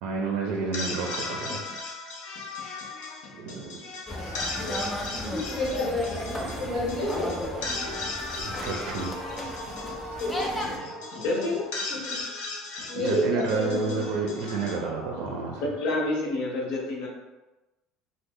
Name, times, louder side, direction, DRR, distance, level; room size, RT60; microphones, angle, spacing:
voice 1, 0.0-1.6 3.3-3.8 6.4-6.6 8.4-9.2 12.9-15.6, right 4 dB, 55° right, 0 dB, 0.4 m, -30 dB
sound 1, 0.5-15.8, left 3 dB, 85° left, 0.6 m, -37 dB
sound 2, 4.1-10.8, left 1 dB, 10° left, 0.3 m, -35 dB
voice 2, 5.3-7.5 10.2-10.4 11.3-11.5 11.9-12.2 12.9-14.1, left 1 dB, 30° left, -6 dB, 0.7 m, -30 dB
sound 3, 6.4-12.2, right 1 dB, 10° right, 0.7 m, -42 dB
voice 3, 11.2-11.7 15.6-17.1, left 2 dB, 60° left, -3 dB, 0.9 m, -28 dB
3.0 x 2.0 x 3.6 m, 1.1 s
cardioid pair, 180°, 0 cm